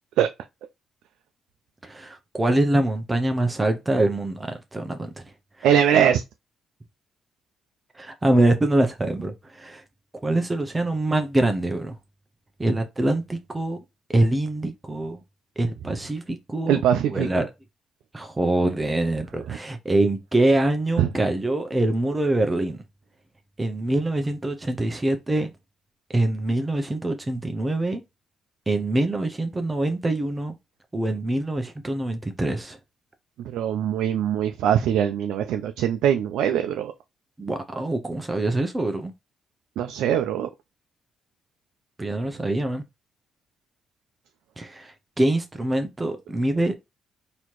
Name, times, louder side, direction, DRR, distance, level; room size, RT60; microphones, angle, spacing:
voice 1, 1.8-5.2 5.6-5.7 7.9-9.8 10.2-11.9 12.6-13.8 14.1-15.2 15.6-16.8 17.1-17.5 18.1-22.8 23.6-25.5 26.1-28.0 28.7-30.5 30.9-32.8 37.4-39.1 42.0-42.8 44.6-46.7, right 1 dB, 20° right, 0.6 m, -24 dB
voice 2, 5.6-6.2 16.7-17.4 19.5-19.6 21.0-21.1 33.5-36.9 39.8-40.5, right 9 dB, 85° right, 0.4 m, -22 dB
4.1 x 2.9 x 3.0 m
cardioid pair, 90°, 0 cm